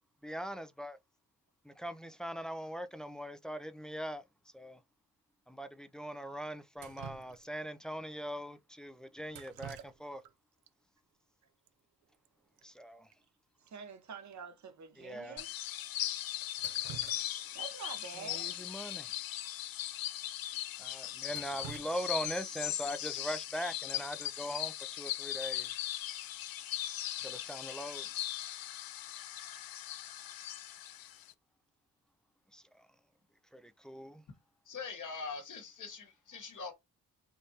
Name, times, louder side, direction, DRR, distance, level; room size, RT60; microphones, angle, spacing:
voice 1, 0.2-1.0 1.6-4.2 4.5-4.8 5.5-10.2 12.6-13.1 15.0-15.4 18.1-19.3 20.8-25.7 27.2-28.1 32.5-32.9 33.5-34.2, equal, ahead, 0.5 m, -41 dB
Drip, 6.8-7.8 9.3-10.3 10.6-10.7 11.7-11.8 12.0-12.3 12.6-12.7 13.1-13.2 13.7-13.8 14.3-14.4 15.1-15.2 16.4-17.6 18.0-18.1 19.4-19.5 19.9-20.0 20.5-20.6 21.0-22.7 24.7-25.0 25.4-25.8, right 10 dB, 80° right, 0.5 m, -50 dB
voice 2, 13.7-15.5 17.5-18.6, right 6 dB, 50° right, 0.9 m, -47 dB
sound 1, 15.4-31.3, left 13 dB, 70° left, 0.5 m, -39 dB
voice 3, 34.7-36.7, left 5 dB, 55° left, 1.2 m, -43 dB
3.6 x 2.6 x 2.8 m
supercardioid pair, 55°, 36 cm